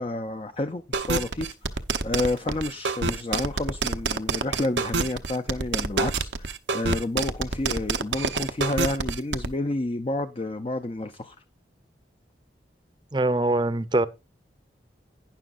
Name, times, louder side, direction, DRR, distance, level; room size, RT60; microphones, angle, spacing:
voice 1, 0.0-11.4, left 2 dB, 30° left, 0.5 m, -30 dB
sound 1, 0.9-9.5, right 4 dB, 90° right, 0.8 m, -26 dB
voice 2, 13.1-14.1, right 2 dB, 25° right, 0.6 m, -23 dB
11.0 x 10.0 x 2.5 m
head